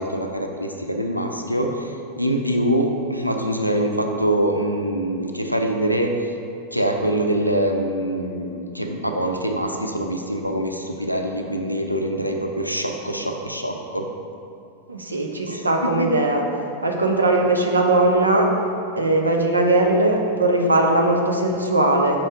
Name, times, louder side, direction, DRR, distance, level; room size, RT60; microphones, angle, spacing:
voice 1, 0.0-6.1 6.7-14.1 15.5-15.7 16.0-16.1, right 1 dB, 90° left, 3 dB, 0.5 m, -24 dB
voice 2, 14.9-16.4 16.8-18.5 19.0-22.3, right 2 dB, 80° right, 1 dB, 0.7 m, -19 dB
5.9 x 4.3 x 4.9 m, 2.6 s
figure-of-eight pair, 90°, 0 cm